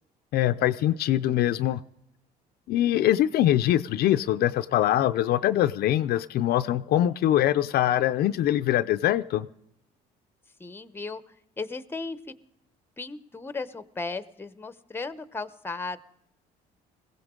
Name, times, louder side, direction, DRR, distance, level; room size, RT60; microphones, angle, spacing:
voice 1, 0.3-1.8 2.7-9.5, left 12 dB, 65° left, 11 dB, 0.5 m, -23 dB
voice 2, 10.6-11.2 11.6-12.2 13.0-16.0, left 3 dB, 15° left, 13 dB, 0.7 m, -35 dB
21.0 x 16.0 x 3.7 m, 0.78 s
cardioid pair, 110°, 17 cm